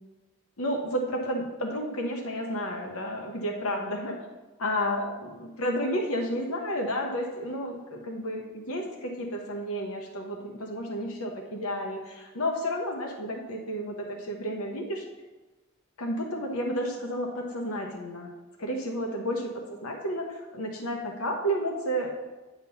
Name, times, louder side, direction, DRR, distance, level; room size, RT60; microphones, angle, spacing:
voice 1, 0.6-4.2 4.6-15.1 16.0-18.3 18.6-22.1, equal, 85° left, 2 dB, 1.0 m, -31 dB
9.9 x 3.7 x 6.9 m, 1.2 s
head